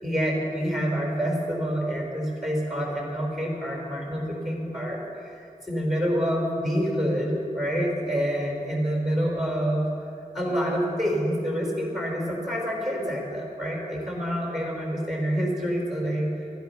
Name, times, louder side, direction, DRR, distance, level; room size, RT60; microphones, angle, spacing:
voice 1, 0.0-5.0 5.7-9.8 10.3-16.3, equal, ahead, -2 dB, 4.3 m, -27 dB
15.0 x 12.0 x 5.7 m, 2.6 s
wide cardioid pair, 80°, 15 cm